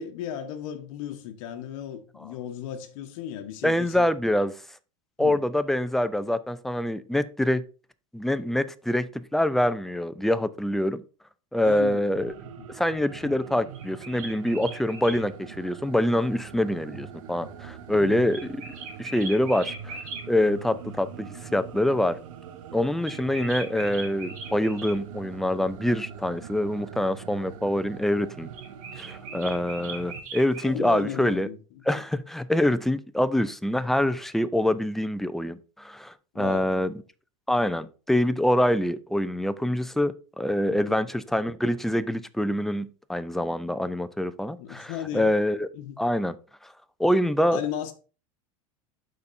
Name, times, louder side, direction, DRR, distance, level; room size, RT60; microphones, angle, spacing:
voice 1, 0.0-4.0 5.2-5.4 11.6-12.1 12.6-12.7 17.9-18.4 30.6-31.6 36.3-36.7 40.7-41.0 44.6-45.3 45.7-46.0 47.5-47.9, left 10 dB, 65° left, 1.1 m, -35 dB
voice 2, 3.6-4.5 5.2-7.6 8.1-11.0 11.5-12.3 12.7-18.6 19.0-20.0 20.3-22.2 22.7-28.5 29.0-31.5 31.9-36.9 37.5-45.7 46.0-46.4 47.0-47.6, left 1 dB, ahead, 0.4 m, -25 dB
sound 1, 12.2-30.2, right 8 dB, 75° right, 1.0 m, -43 dB
sound 2, 13.7-15.2 18.3-20.2 23.0-25.0 28.5-30.7, right 3 dB, 50° right, 2.4 m, -39 dB
11.5 x 4.2 x 2.6 m
hypercardioid pair, 105°, 17 cm